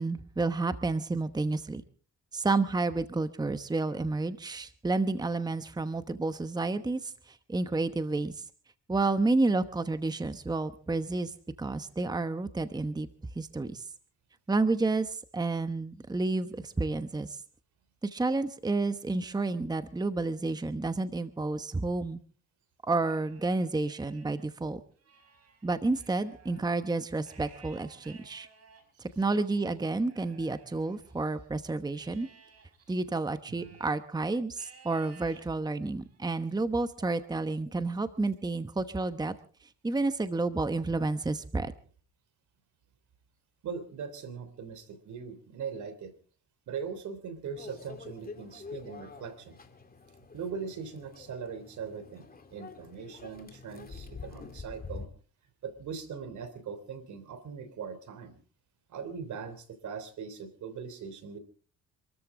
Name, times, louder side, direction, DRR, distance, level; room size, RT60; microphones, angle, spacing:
voice 1, 0.0-1.8 2.3-8.4 8.9-11.3 11.6-13.1 13.4-13.8 14.5-17.3 18.0-22.2 22.8-24.8 25.6-28.5 29.0-32.3 32.9-39.3 39.8-41.7, right 3 dB, 15° right, 11 dB, 1.0 m, -30 dB
Livestock farm animals working animals, 22.9-24.5 24.9-31.5 31.9-34.1 34.5-35.5 36.0-36.4 37.0-38.1, right 5 dB, 55° right, 5.0 m, -58 dB
voice 2, 43.6-46.1 46.7-49.6 50.3-55.1 55.6-58.4 58.9-61.4, right 6 dB, 75° right, 12 dB, 3.3 m, -40 dB
Microwave oven, 47.6-55.1, left 4 dB, 30° left, 2.6 m, -46 dB
26.5 x 13.5 x 3.8 m, 0.41 s
cardioid pair, 90°, 30 cm